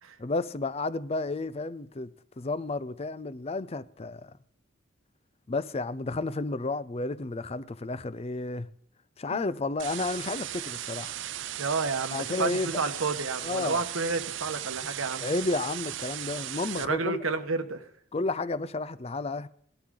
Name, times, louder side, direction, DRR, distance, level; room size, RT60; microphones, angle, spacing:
voice 1, 0.2-4.4 5.5-8.7 9.2-11.2 12.1-12.8 13.4-13.8 15.2-17.2 18.1-19.5, left 3 dB, 30° left, 0.5 m, -32 dB
sound 1, 9.8-16.8, right 12 dB, 60° right, 0.5 m, -37 dB
voice 2, 11.6-15.3 16.7-17.8, right 4 dB, 90° right, 1.2 m, -31 dB
17.5 x 11.5 x 3.8 m
head